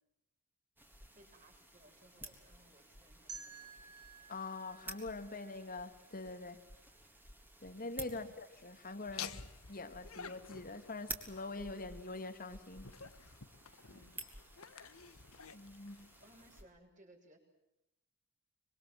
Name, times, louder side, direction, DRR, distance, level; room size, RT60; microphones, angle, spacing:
sound 1, 0.8-16.6, right 1 dB, 10° right, 3.7 m, -53 dB
voice 1, 1.2-4.0 8.1-8.3 13.9-14.3 16.2-17.4, right 1 dB, 35° right, 2 dB, 7.2 m, -63 dB
sound 2, 3.3-6.2, right 4 dB, 85° right, 4.5 m, -53 dB
voice 2, 4.3-6.6 7.6-9.4 9.7-13.0 15.5-16.1, left 3 dB, 40° left, 8 dB, 2.5 m, -44 dB
Laughter, 9.1-16.7, left 7 dB, 70° left, 1.6 m, -51 dB
26.0 x 24.0 x 7.6 m, 0.89 s
head